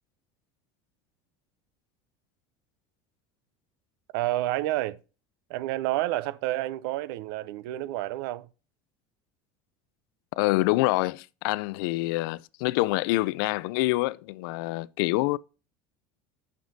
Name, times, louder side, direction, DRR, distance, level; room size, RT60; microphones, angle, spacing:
voice 1, 4.1-5.0 5.5-8.5, right 16 dB, 75° right, 0.5 m, -29 dB
voice 2, 10.4-15.4, left 20 dB, 70° left, 0.4 m, -26 dB
9.3 x 6.6 x 2.7 m
cardioid pair, 165°, 12 cm